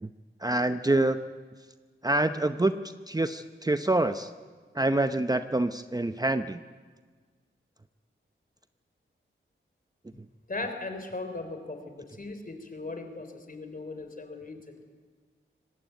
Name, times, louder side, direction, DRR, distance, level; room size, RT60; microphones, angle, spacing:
voice 1, 0.4-1.2 2.0-4.3 4.7-6.6 10.2-10.3, right 2 dB, 20° right, 10 dB, 0.7 m, -26 dB
voice 2, 10.5-14.7, left 2 dB, 40° left, 7 dB, 3.6 m, -38 dB
25.0 x 19.0 x 9.2 m, 1.5 s
wide cardioid pair, 80°, 21 cm